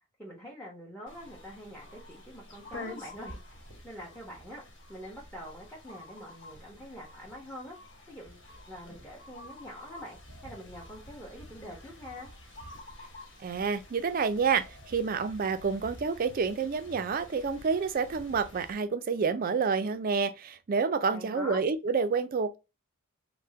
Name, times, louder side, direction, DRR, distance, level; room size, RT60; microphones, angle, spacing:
voice 1, 0.2-4.6 4.9-7.8 8.1-12.3 21.1-21.6, equal, 5° left, 0.9 m, -45 dB
sound 1, 1.1-18.7, left 1 dB, 60° left, 1.3 m, -49 dB
voice 2, 13.4-22.6, right 5 dB, 40° right, 0.4 m, -29 dB
3.4 x 2.1 x 2.7 m
head